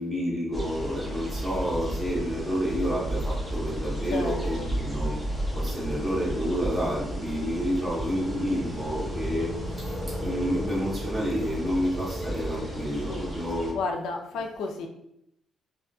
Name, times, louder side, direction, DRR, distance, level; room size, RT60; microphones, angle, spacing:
voice 1, 0.0-5.1 5.5-13.8, equal, 25° right, -5 dB, 1.2 m, -29 dB
sound 1, 0.5-13.7, equal, 10° right, 0.7 m, -33 dB
voice 2, 4.1-4.7 13.1-13.3 13.7-14.9, left 3 dB, 85° left, 3 dB, 0.4 m, -32 dB
2.7 x 2.2 x 2.5 m, 0.78 s
cardioid pair, 90°, 0 cm